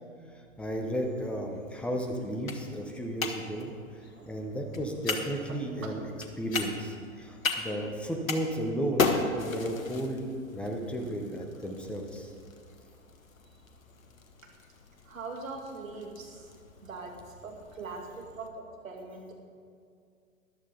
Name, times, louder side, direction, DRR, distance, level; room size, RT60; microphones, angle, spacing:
sound 1, 0.6-18.5, left 4 dB, 75° left, 1.4 m, -38 dB
voice 1, 0.6-3.7 4.3-12.3, right 1 dB, 5° left, 2 dB, 0.9 m, -34 dB
voice 2, 15.1-16.5 16.8-17.1 17.4-18.5 18.8-19.3, right 4 dB, 70° right, 0 dB, 2.5 m, -41 dB
13.5 x 11.5 x 4.0 m, 2.2 s
figure-of-eight pair, 115°, 41 cm